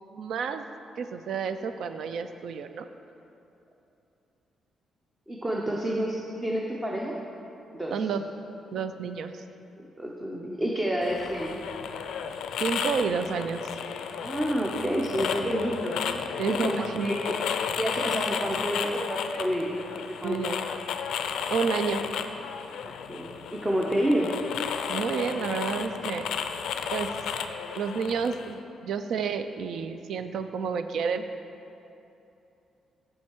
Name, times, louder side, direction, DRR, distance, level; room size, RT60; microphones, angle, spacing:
voice 1, 0.1-0.6 1.0-2.9 7.9-8.2 8.7-9.4 12.6-13.6 16.4-17.1 20.2-20.6 21.5-22.0 24.9-26.3 26.9-27.1 27.8-31.3, right 6 dB, 65° right, 9 dB, 0.4 m, -30 dB
voice 2, 5.3-7.1 7.7-7.9 10.0-11.6 14.2-16.0 16.5-17.4 17.8-20.4 20.6-20.7 22.8-24.3, equal, 15° right, -2 dB, 0.6 m, -29 dB
sound 1, 11.0-28.5, left 7 dB, 80° left, 0.4 m, -33 dB
7.4 x 6.5 x 4.6 m, 2.8 s
cardioid pair, 140°, 0 cm